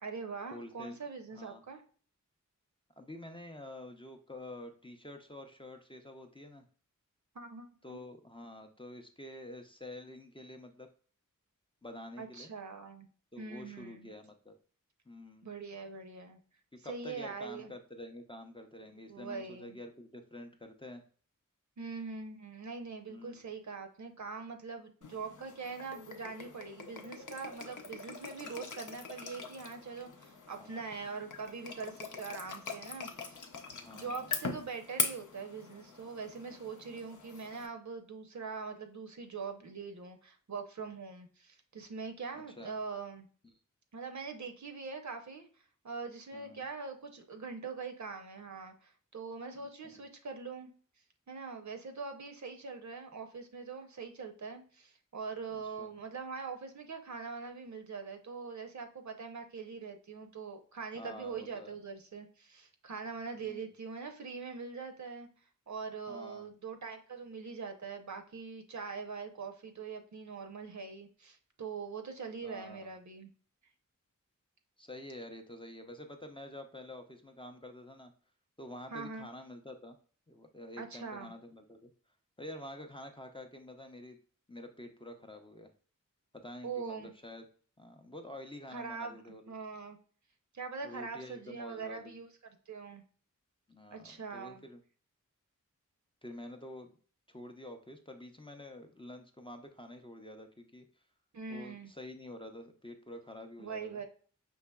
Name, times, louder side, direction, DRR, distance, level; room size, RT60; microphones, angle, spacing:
voice 1, 0.0-1.8 7.3-8.0 12.2-13.1 13.4-14.1 15.4-16.4 16.8-17.7 19.1-19.8 21.8-33.5 33.9-43.3 43.9-45.5 45.8-50.7 51.3-65.3 65.7-73.3 78.9-79.3 80.8-81.3 86.6-87.1 88.7-89.2 89.5-90.0 90.5-92.3 92.7-93.0 93.9-94.6 101.3-101.9 103.6-104.0, right 5 dB, 60° right, 6 dB, 0.7 m, -43 dB
voice 2, 0.5-1.0 1.3-1.6 3.0-6.6 7.8-10.9 11.8-12.5 13.3-14.5 15.1-15.5 16.8-21.0 23.1-23.4 30.5-30.8 33.7-34.3 42.3-42.8 46.3-46.6 49.7-50.0 55.5-55.9 60.9-61.7 63.4-63.6 66.1-66.5 72.4-72.9 74.8-78.1 78.6-80.0 80.3-81.9 82.4-84.2 84.5-85.7 86.3-87.4 87.8-89.5 90.8-92.1 93.7-94.8 96.2-96.9 97.3-100.9 101.5-104.0, left 1 dB, 15° left, 4 dB, 0.5 m, -48 dB
sound 1, 25.0-37.7, left 4 dB, 70° left, 0.6 m, -42 dB
5.5 x 2.9 x 2.2 m, 0.43 s
wide cardioid pair, 90°, 32 cm